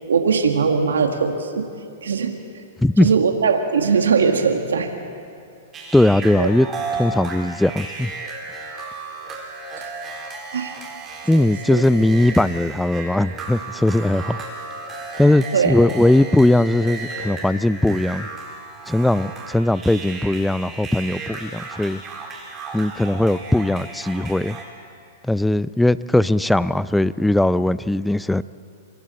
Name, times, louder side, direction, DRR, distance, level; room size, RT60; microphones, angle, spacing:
voice 1, 0.1-1.6 2.0-2.3 3.0-4.9 6.3-6.5 10.5-10.7 11.3-11.8 15.5-15.8, right 5 dB, 90° right, 4 dB, 1.7 m, -20 dB
voice 2, 2.8-3.1 5.9-6.7 7.0-8.1 11.3-14.4 15.2-18.3 18.9-22.0 22.7-24.6 25.2-28.4, left 1 dB, 5° left, 17 dB, 0.4 m, -19 dB
sound 1, 5.7-24.6, right 3 dB, 25° right, 4.0 m, -34 dB
28.0 x 23.0 x 4.3 m, 2.5 s
hypercardioid pair, 130°, 0 cm